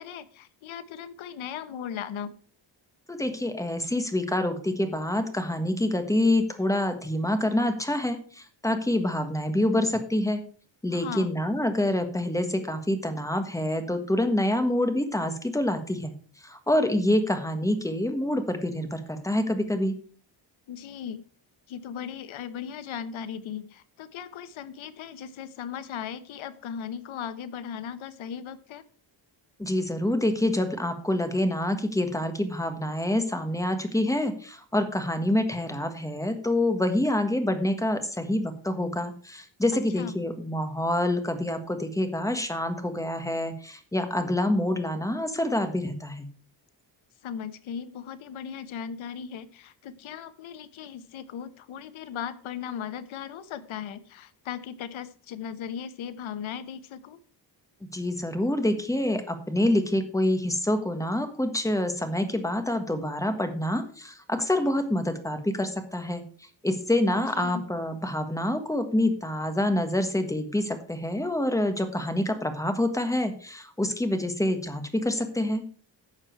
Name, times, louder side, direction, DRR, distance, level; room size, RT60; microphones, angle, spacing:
voice 1, 0.0-2.3 10.9-11.3 20.7-21.2 21.7-28.8 39.7-40.1 47.2-57.2 67.2-67.6, left 8 dB, 85° left, 13 dB, 1.0 m, -37 dB
voice 2, 3.1-10.4 10.8-16.1 16.4-20.0 29.6-46.3 57.9-66.2 66.6-75.6, left 1 dB, 5° left, 8 dB, 1.4 m, -27 dB
12.0 x 7.3 x 4.6 m, 0.43 s
wide cardioid pair, 135°, 46 cm